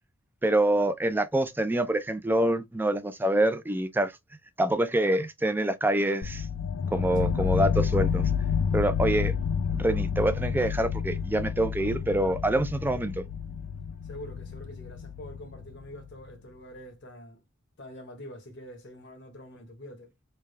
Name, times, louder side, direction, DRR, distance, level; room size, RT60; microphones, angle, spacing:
voice 1, 0.4-4.1 4.6-6.5 6.9-8.3 8.7-9.3 9.7-13.3, right 1 dB, 10° right, 0.4 m, -26 dB
sound 1, 6.2-16.0, left 7 dB, 85° left, 0.4 m, -29 dB
voice 2, 14.0-17.4 17.8-20.1, equal, 60° left, 1.0 m, -45 dB
3.4 x 2.3 x 3.2 m
head